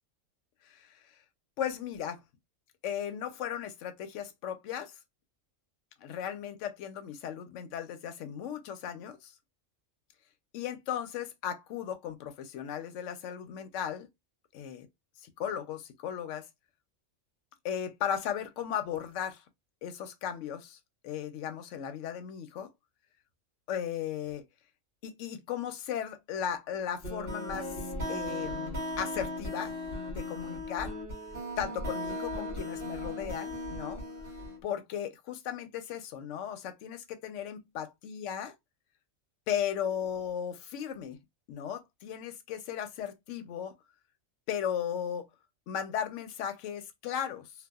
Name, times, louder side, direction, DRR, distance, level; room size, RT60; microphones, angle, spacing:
voice 1, 0.6-0.9 1.6-2.2 2.8-5.0 6.0-9.3 10.5-14.1 14.5-14.9 15.2-16.5 17.6-19.4 19.8-20.8 21.0-22.7 23.7-24.4 25.0-27.8 28.1-29.7 30.1-31.0 31.6-34.0 34.6-38.5 39.5-41.2 41.5-43.7 44.5-45.3 45.7-47.5, left 9 dB, 70° left, 0.9 m, -36 dB
sound 1, 27.0-34.6, left 1 dB, 45° right, 1.3 m, -37 dB
2.7 x 2.3 x 2.3 m
omnidirectional pair, 1.4 m